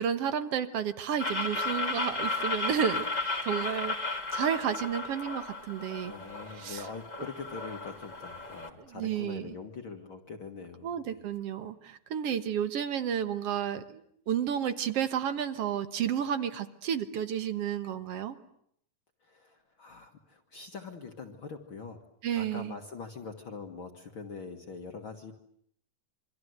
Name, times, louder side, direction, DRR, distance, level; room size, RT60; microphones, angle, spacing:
voice 1, 0.0-3.1 3.4-6.1 6.5-6.8 8.8-9.5 10.8-18.4 22.2-22.7, right 8 dB, 60° right, 11 dB, 2.1 m, -31 dB
sound 1, 1.2-8.7, left 3 dB, 15° left, 1.6 m, -34 dB
voice 2, 6.0-11.3 19.2-22.0 22.4-25.3, left 4 dB, 45° left, 4 dB, 2.1 m, -43 dB
27.5 x 24.5 x 8.1 m, 0.70 s
omnidirectional pair, 3.5 m